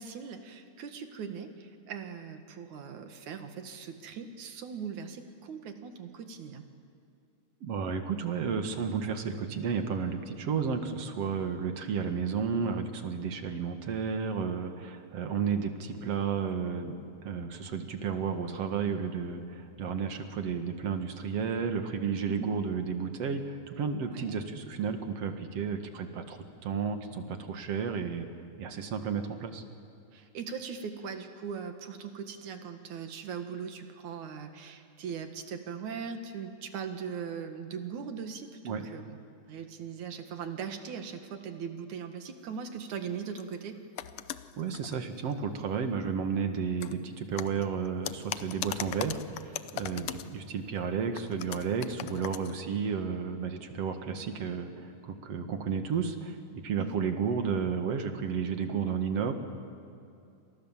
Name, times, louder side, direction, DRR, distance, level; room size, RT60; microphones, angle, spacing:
voice 1, 0.0-6.6 22.3-22.8 24.1-24.3 30.1-39.2 39.5-43.8 56.8-57.0, right 6 dB, 75° right, 7 dB, 3.2 m, -40 dB
voice 2, 7.6-16.9 17.2-28.3 28.6-29.6 38.6-38.9 44.6-59.4, right 6 dB, 55° right, 7 dB, 2.8 m, -32 dB
sound 1, 42.8-43.0 43.4-43.5 44.0-45.3 46.8-47.0 47.4-50.3 51.1-52.6, left 11 dB, 70° left, 1.4 m, -39 dB
29.5 x 27.0 x 7.5 m, 2.6 s
omnidirectional pair, 3.5 m